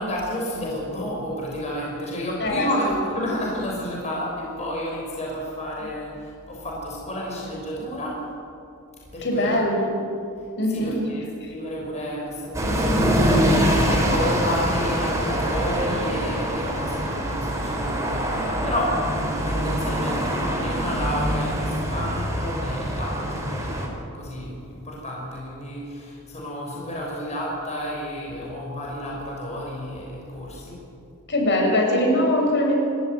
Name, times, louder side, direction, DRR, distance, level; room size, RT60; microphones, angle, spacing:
voice 1, 0.0-8.2 9.1-9.7 10.7-23.8 24.1-30.8, equal, 30° left, -3 dB, 5.8 m, -31 dB
voice 2, 2.4-3.0 5.8-5.9 9.2-9.9 10.6-11.0 11.4-11.5 31.3-32.7, left 1 dB, 55° left, 1 dB, 6.4 m, -22 dB
sound 1, 12.5-23.9, equal, 15° right, 4.2 m, -24 dB
30.0 x 14.0 x 9.2 m, 2.5 s
head